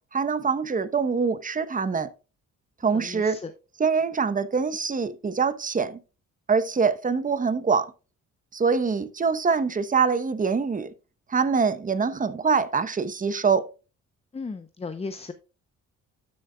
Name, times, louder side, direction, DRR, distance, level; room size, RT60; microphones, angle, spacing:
voice 1, 0.1-2.1 2.8-3.4 3.8-6.0 6.5-7.9 8.5-10.9 11.3-13.7, right 5 dB, 25° right, 0.9 m, -24 dB
voice 2, 2.9-3.5 14.3-15.3, left 4 dB, 20° left, 0.7 m, -35 dB
12.5 x 6.3 x 2.3 m
cardioid pair, 90°, 30 cm